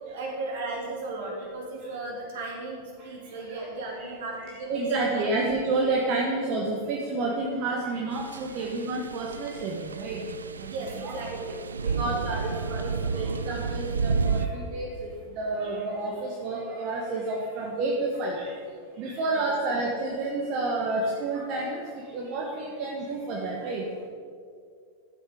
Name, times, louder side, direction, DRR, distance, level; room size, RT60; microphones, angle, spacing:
voice 1, 0.1-5.3 10.6-11.5 12.0-12.2 12.9-13.1 19.4-19.5, right 2 dB, 55° right, -1 dB, 2.9 m, -36 dB
voice 2, 3.0-11.5 11.8-18.6 18.9-24.1, right 2 dB, 40° right, -1 dB, 1.3 m, -30 dB
sound 1, 8.1-14.5, right 5 dB, 70° right, 0.4 m, -31 dB
12.0 x 7.9 x 5.1 m, 2.2 s
figure-of-eight pair, 90°, 0 cm